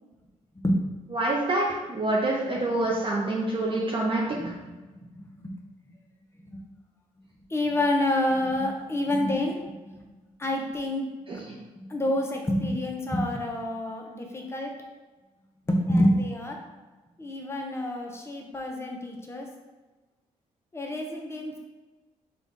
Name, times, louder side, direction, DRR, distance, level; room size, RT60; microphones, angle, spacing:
voice 1, 1.1-4.2 11.3-11.6, right 2 dB, 40° right, -4 dB, 0.8 m, -26 dB
voice 2, 4.4-5.6 5.9-6.0 6.4-6.6 7.5-9.6 9.9-10.1 10.4-11.1 11.8-14.7 15.6-16.6 17.2-19.5 20.7-21.6, left 1 dB, 20° left, 1 dB, 0.8 m, -28 dB
4.0 x 2.4 x 3.7 m, 1.2 s
cardioid pair, 70°, 14 cm